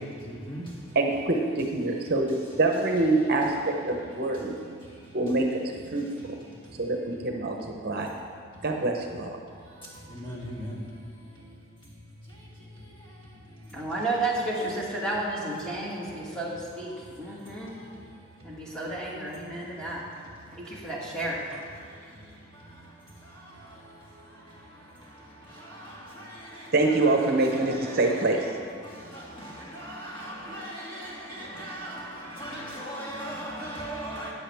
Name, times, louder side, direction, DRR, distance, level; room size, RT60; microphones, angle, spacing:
voice 1, 0.9-3.5 3.8-4.5 5.1-5.5 5.9-6.0 6.8-7.6 7.8-8.1 8.6-9.4 26.7-28.5, right 2 dB, 50° right, 0.8 m, -25 dB
voice 2, 13.7-17.7 18.4-20.0 20.5-21.4, right 2 dB, 5° left, 2.1 m, -32 dB
voice 3, 31.6-32.0 32.4-34.3, right 1 dB, 25° left, 2.5 m, -36 dB
14.0 x 9.3 x 3.5 m
head